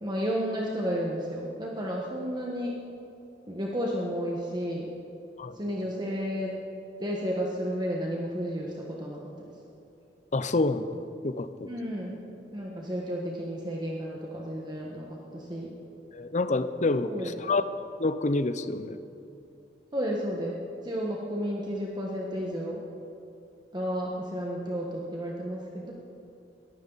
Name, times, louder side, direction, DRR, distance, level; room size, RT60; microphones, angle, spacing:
voice 1, 0.0-2.8 3.5-4.9 5.5-6.6 7.0-9.2 11.6-12.2 12.5-15.8 17.0-17.4 19.9-20.6 20.8-22.8 23.7-25.9, equal, 25° right, -2 dB, 1.4 m, -32 dB
voice 2, 10.3-10.9 11.2-11.7 16.1-17.1 17.4-17.6 18.0-19.0, left 2 dB, 40° left, 12 dB, 0.6 m, -27 dB
21.5 x 15.0 x 4.1 m, 2.8 s
head